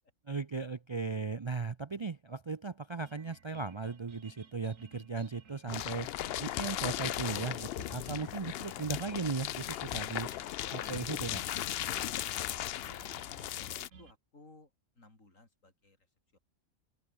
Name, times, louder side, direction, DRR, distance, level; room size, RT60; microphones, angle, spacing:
voice 1, 0.3-6.1 6.4-10.3 10.7-11.4, right 4 dB, 40° right, 0.4 m, -37 dB
sound 1, 3.0-14.1, right 6 dB, 90° right, 2.0 m, -58 dB
sound 2, 5.7-13.9, left 12 dB, 65° left, 0.7 m, -37 dB
voice 2, 12.6-16.4, left 2 dB, 90° left, 4.8 m, -59 dB
open air
omnidirectional pair, 1.3 m